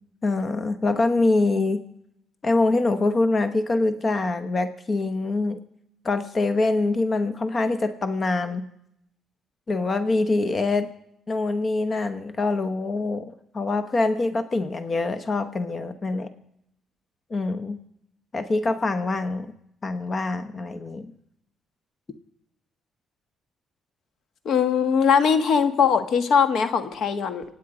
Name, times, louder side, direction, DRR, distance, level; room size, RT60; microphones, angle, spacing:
voice 1, 0.2-1.8 2.4-5.6 6.0-8.7 9.7-10.9 11.3-13.3 13.5-16.3 17.3-17.8 18.3-19.5 19.8-21.1, left 2 dB, 35° left, 10 dB, 1.0 m, -24 dB
voice 2, 24.4-27.4, left 6 dB, 65° left, 10 dB, 1.4 m, -21 dB
26.0 x 9.3 x 5.0 m, 0.77 s
cardioid pair, 90°, 0 cm